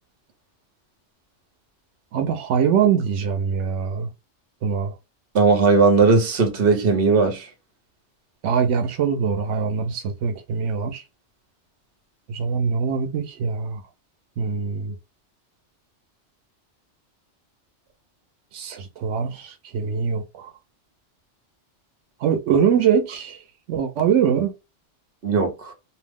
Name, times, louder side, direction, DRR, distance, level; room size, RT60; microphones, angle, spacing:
voice 1, 2.1-4.1 4.6-4.9 8.4-11.0 12.3-13.8 14.4-14.9 18.5-20.5 22.2-23.4 23.7-24.5, right 7 dB, 90° right, 0.9 m, -23 dB
voice 2, 5.3-7.5 25.2-25.7, right 4 dB, 55° right, 1.0 m, -18 dB
2.6 x 2.0 x 3.4 m
omnidirectional pair, 1.2 m